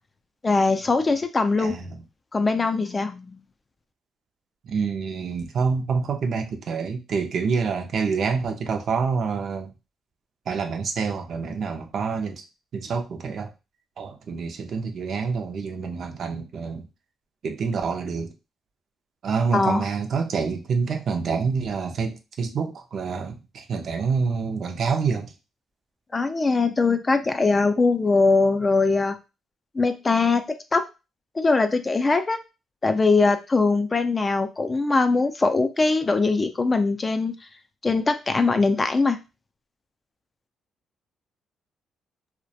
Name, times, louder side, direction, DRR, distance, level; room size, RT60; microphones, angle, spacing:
voice 1, 0.4-1.8 2.3-3.4 19.5-19.8 26.1-29.2 29.8-30.4 30.7-30.8 31.4-32.4 32.8-37.3 37.8-39.2, left 3 dB, 25° left, 8 dB, 0.3 m, -21 dB
voice 2, 1.6-2.0 4.6-9.7 10.5-12.4 12.7-13.5 14.0-16.8 17.4-18.3 19.2-25.3, right 5 dB, 60° right, 5 dB, 0.4 m, -27 dB
2.2 x 2.1 x 2.7 m, 0.28 s
cardioid pair, 90°, 0 cm